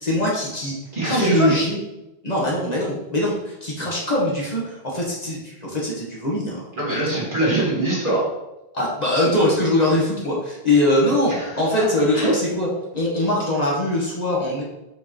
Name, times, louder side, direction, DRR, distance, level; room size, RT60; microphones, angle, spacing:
voice 1, 0.0-0.7 1.0-1.8 2.2-6.6 7.1-7.2 8.7-12.7 12.9-14.6, left 1 dB, 40° left, -4 dB, 1.7 m, -22 dB
voice 2, 0.9-1.5 6.8-8.3 11.3-11.8 12.1-12.3, right 1 dB, 55° right, -5 dB, 2.4 m, -22 dB
5.4 x 4.7 x 4.6 m, 0.96 s
omnidirectional pair, 1.0 m